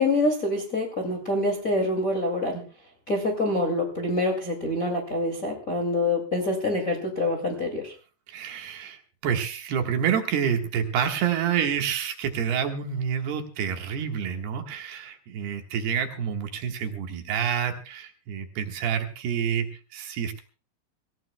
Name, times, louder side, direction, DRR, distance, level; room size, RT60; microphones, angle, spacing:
voice 1, 0.0-2.6 3.1-7.9, left 2 dB, 25° left, 2 dB, 1.9 m, -26 dB
voice 2, 8.3-20.4, right 8 dB, 70° right, 4 dB, 3.4 m, -28 dB
25.0 x 16.5 x 2.2 m, 0.34 s
omnidirectional pair, 5.0 m